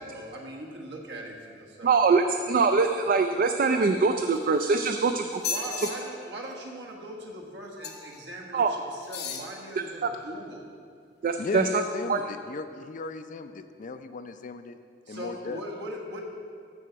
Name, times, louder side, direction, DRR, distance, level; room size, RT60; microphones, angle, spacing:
voice 1, 0.0-2.0 5.5-10.7 15.1-16.2, right 1 dB, 75° right, -1 dB, 1.5 m, -40 dB
voice 2, 1.8-5.4 8.5-8.7 11.2-11.7 12.1-12.2, right 4 dB, 55° right, 6 dB, 0.4 m, -23 dB
sound 1, 4.2-4.9 5.3-5.9 7.8-8.2 9.0-9.5 10.1-10.2, left 5 dB, 65° left, 0.9 m, -35 dB
voice 3, 11.4-14.8 15.1-15.6, left 3 dB, 50° left, 10 dB, 0.4 m, -35 dB
15.0 x 5.0 x 4.6 m, 2.3 s
head